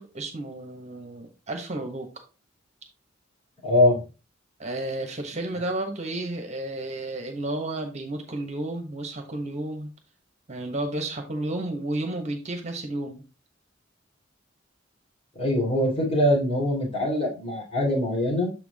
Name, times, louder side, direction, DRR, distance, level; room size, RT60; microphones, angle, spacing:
voice 1, 0.0-2.1 4.6-9.9 10.5-13.2, right 1 dB, 35° right, 4 dB, 1.3 m, -32 dB
voice 2, 3.6-4.0 15.3-18.5, left 1 dB, 30° left, -3 dB, 2.9 m, -23 dB
7.2 x 4.7 x 3.5 m, 0.32 s
head